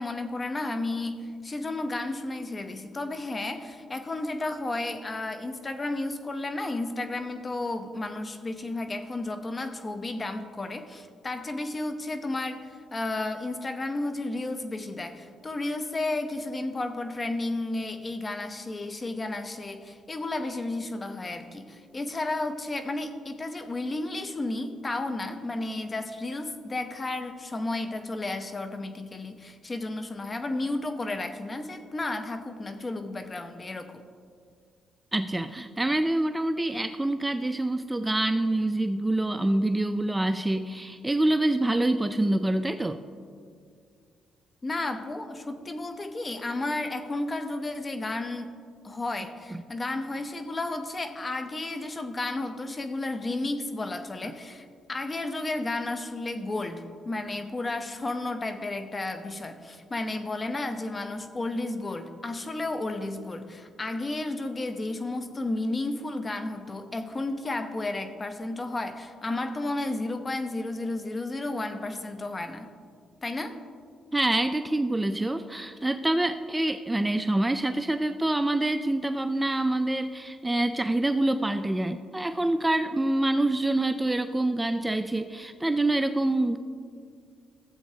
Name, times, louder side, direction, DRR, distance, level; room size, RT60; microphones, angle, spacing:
voice 1, 0.0-34.0 44.6-48.5 48.8-72.7 73.2-73.6, left 2 dB, 30° left, 8 dB, 0.7 m, -32 dB
voice 2, 35.1-43.0 74.1-86.6, right 1 dB, 10° right, 9 dB, 0.3 m, -26 dB
15.0 x 7.8 x 2.8 m, 2.1 s
cardioid pair, 90°, 0 cm